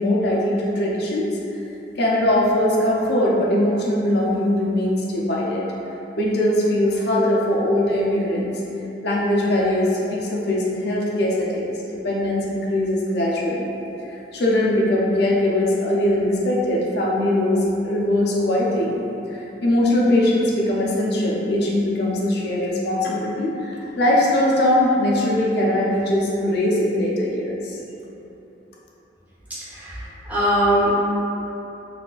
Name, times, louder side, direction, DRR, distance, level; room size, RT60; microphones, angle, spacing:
voice 1, 0.0-1.4 2.0-5.6 6.2-8.5 9.0-13.7 14.3-18.9 19.6-27.8, left 1 dB, 60° left, -4 dB, 0.5 m, -21 dB
voice 2, 29.7-31.0, equal, 10° right, -12 dB, 0.9 m, -21 dB
4.0 x 2.4 x 2.4 m, 3.0 s
head